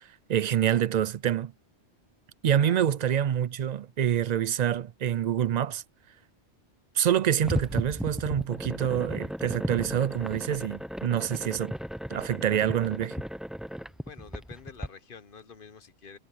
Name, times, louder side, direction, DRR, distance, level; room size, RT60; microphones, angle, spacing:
voice 1, 0.0-1.5 2.4-5.8 6.9-11.7 12.1-13.2, right 10 dB, 60° right, 0.4 m, -26 dB
voice 2, 2.5-3.0 14.1-16.2, left 5 dB, 50° left, 1.1 m, -47 dB
sound 1, 7.4-14.9, equal, ahead, 0.5 m, -35 dB
omnidirectional pair, 1.2 m